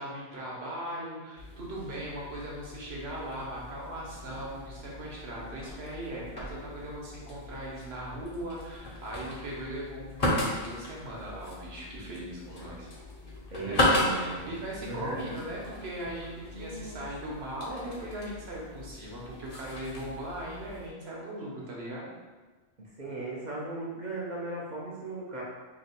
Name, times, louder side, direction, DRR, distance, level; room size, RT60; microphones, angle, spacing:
voice 1, 0.0-12.9 13.6-22.1, right 1 dB, 60° right, -4 dB, 1.2 m, -39 dB
sound 1, 1.4-20.9, left 1 dB, 40° left, 0.7 m, -36 dB
voice 2, 13.5-14.5 14.9-15.3 22.8-25.4, right 2 dB, 45° right, -5 dB, 0.7 m, -37 dB
3.0 x 3.0 x 4.3 m, 1.3 s
omnidirectional pair, 1.2 m